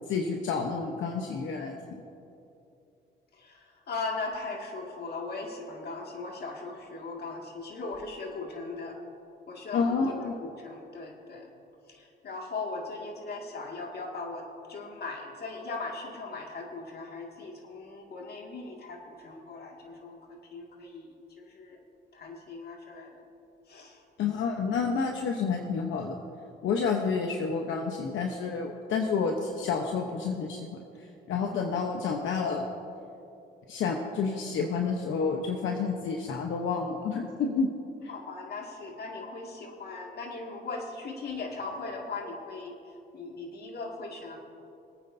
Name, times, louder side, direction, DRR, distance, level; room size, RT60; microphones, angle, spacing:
voice 1, 0.1-2.0 9.7-10.4 24.2-26.2 26.6-30.7 31.3-32.6 33.7-37.7, left 5 dB, 75° left, 2 dB, 1.0 m, -29 dB
voice 2, 3.4-9.0 9.5-11.5 11.9-21.1 21.4-21.8 22.1-23.2 23.7-24.0 38.1-42.7 43.1-44.4, left 3 dB, 55° left, 0 dB, 2.2 m, -39 dB
24.5 x 9.1 x 2.7 m, 2.7 s
cardioid pair, 90°, 20 cm